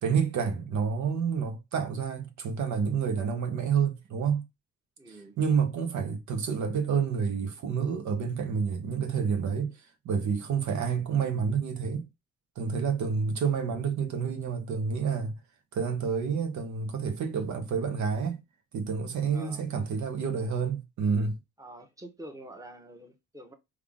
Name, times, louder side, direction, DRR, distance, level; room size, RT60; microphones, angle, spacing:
voice 1, 0.0-4.4 5.1-12.1 12.6-15.4 15.7-18.4 18.7-21.4, right 6 dB, 65° right, 0.9 m, -29 dB
voice 2, 5.0-5.4 19.3-19.6 21.6-23.5, right 1 dB, 10° right, 1.0 m, -46 dB
3.5 x 2.5 x 3.5 m
supercardioid pair, 70°, 31 cm